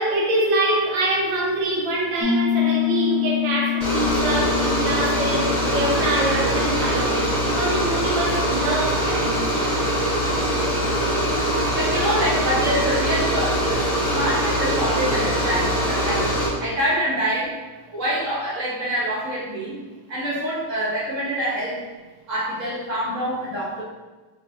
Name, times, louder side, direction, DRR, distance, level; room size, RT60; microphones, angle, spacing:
voice 1, 0.0-9.5, right 2 dB, 70° right, -4 dB, 1.3 m, -25 dB
Piano, 2.2-10.7, left 10 dB, 80° left, 0.8 m, -28 dB
sound 1, 3.8-16.5, equal, 30° left, 1.5 m, -22 dB
voice 2, 11.7-16.3 16.6-17.5 17.9-19.8 20.1-21.8 22.3-23.8, right 1 dB, 45° right, -8 dB, 1.1 m, -25 dB
3.3 x 3.2 x 2.6 m, 1.2 s
omnidirectional pair, 2.4 m